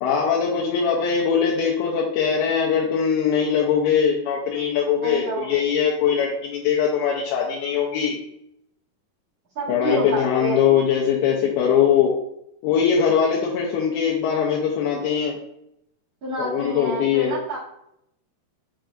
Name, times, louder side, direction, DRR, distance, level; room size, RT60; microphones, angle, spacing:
voice 1, 0.0-8.2 9.7-12.1 12.6-15.4 16.4-17.4, left 7 dB, 80° left, -4 dB, 2.4 m, -21 dB
voice 2, 4.9-5.6 9.5-10.7 16.2-17.6, right 1 dB, 80° right, -11 dB, 1.1 m, -29 dB
6.1 x 3.3 x 2.5 m, 0.77 s
omnidirectional pair, 4.8 m